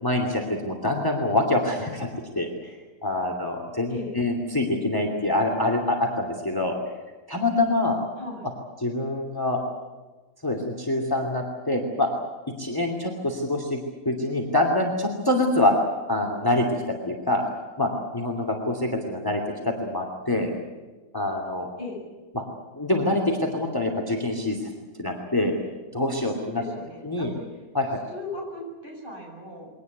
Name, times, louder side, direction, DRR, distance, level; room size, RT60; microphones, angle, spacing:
voice 1, 0.0-2.7 3.0-6.8 7.3-8.0 8.8-9.6 10.4-12.1 12.6-15.7 16.1-17.5 17.8-20.5 21.1-21.7 22.3-22.4 22.7-24.7 25.0-25.5 25.9-26.6 27.0-27.3 27.7-28.0, left 2 dB, 15° left, 3 dB, 2.8 m, -25 dB
voice 2, 26.5-27.6 28.1-29.7, left 2 dB, 30° right, -1 dB, 8.2 m, -37 dB
23.5 x 18.5 x 9.4 m, 1.2 s
omnidirectional pair, 1.6 m